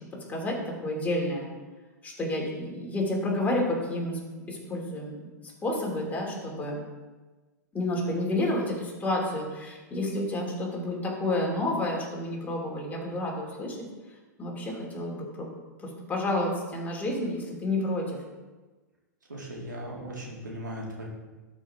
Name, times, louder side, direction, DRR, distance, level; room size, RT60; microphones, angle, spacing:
voice 1, 0.3-1.5 2.0-4.2 4.5-5.3 5.6-6.8 7.7-13.9 14.4-15.5 15.8-18.2, left 1 dB, 15° left, -2 dB, 2.7 m, -30 dB
voice 2, 19.3-21.0, equal, 90° right, -3 dB, 2.4 m, -38 dB
12.5 x 5.2 x 3.7 m, 1.2 s
hypercardioid pair, 105°, 10 cm